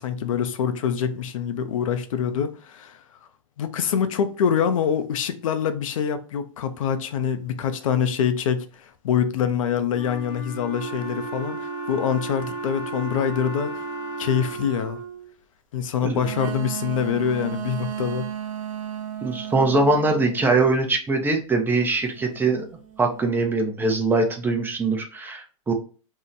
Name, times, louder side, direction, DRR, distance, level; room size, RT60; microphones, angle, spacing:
voice 1, 0.0-3.0 3.6-13.7 14.2-15.0 15.7-18.3, left 8 dB, 80° left, 0.5 m, -25 dB
Wind instrument woodwind instrument, 9.9-14.8, left 4 dB, 40° left, 0.8 m, -38 dB
Wind instrument woodwind instrument 2, 10.7-15.3, right 7 dB, 65° right, 1.2 m, -34 dB
sound 1, 13.6-14.9 16.2-20.7 22.1-23.3, right 8 dB, 85° right, 0.7 m, -35 dB
voice 2, 19.2-22.6 23.0-25.7, right 3 dB, 10° right, 0.5 m, -22 dB
2.7 x 2.1 x 3.7 m
hypercardioid pair, 125°, 17 cm